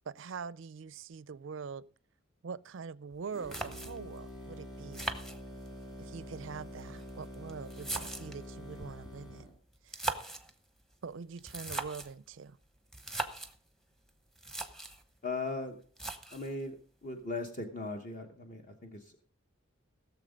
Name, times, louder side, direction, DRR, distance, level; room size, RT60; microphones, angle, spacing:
voice 1, 0.1-1.9 2.4-5.1 6.0-9.5 9.8-10.0 11.0-12.6, right 5 dB, 60° right, 0.4 m, -43 dB
sound 1, 3.1-3.2 3.5-4.2 4.9-5.9 6.8-8.5 9.7-10.5 11.4-12.2 12.9-13.6 14.1-14.2 14.4-15.0 16.0-16.5, right 2 dB, ahead, 0.9 m, -39 dB
sound 2, 3.3-9.6, left 1 dB, 20° left, 2.7 m, -46 dB
voice 2, 15.2-15.8 16.3-16.8 17.0-19.2, left 3 dB, 40° left, 1.0 m, -38 dB
16.5 x 7.2 x 5.1 m
head